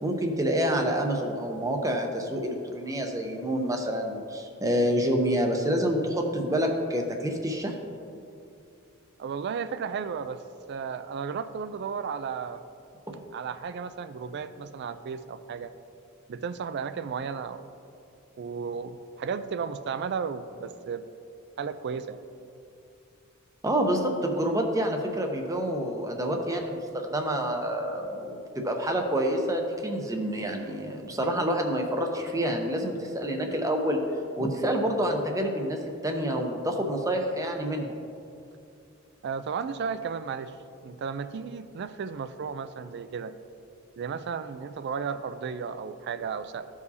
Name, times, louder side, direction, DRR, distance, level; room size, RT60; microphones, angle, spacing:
voice 1, 0.0-7.8 23.6-34.0 34.4-38.0, equal, 15° right, 3 dB, 0.7 m, -28 dB
voice 2, 9.2-10.4 10.7-12.6 13.3-15.7 16.3-17.7 18.4-21.1 21.6-22.2 39.2-40.6 40.8-43.3 44.0-46.7, right 6 dB, 55° right, 12 dB, 0.3 m, -34 dB
14.0 x 4.8 x 2.7 m, 2.6 s
head